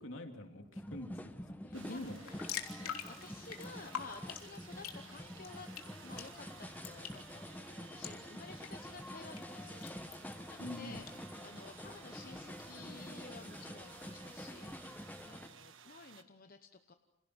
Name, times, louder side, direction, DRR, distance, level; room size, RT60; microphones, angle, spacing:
voice 1, 0.0-2.2 10.6-11.0, left 1 dB, 65° left, 4 dB, 3.1 m, -45 dB
sound 1, 0.7-15.5, left 1 dB, 10° left, 1.1 m, -48 dB
voice 2, 1.7-2.0 2.8-5.7 6.0-16.9, left 4 dB, 40° left, 7 dB, 1.0 m, -53 dB
sound 2, 1.7-16.2, right 7 dB, 65° right, 1.5 m, -57 dB
sound 3, 2.0-11.2, left 8 dB, 90° left, 3.3 m, -48 dB
29.0 x 28.0 x 6.3 m, 0.98 s
head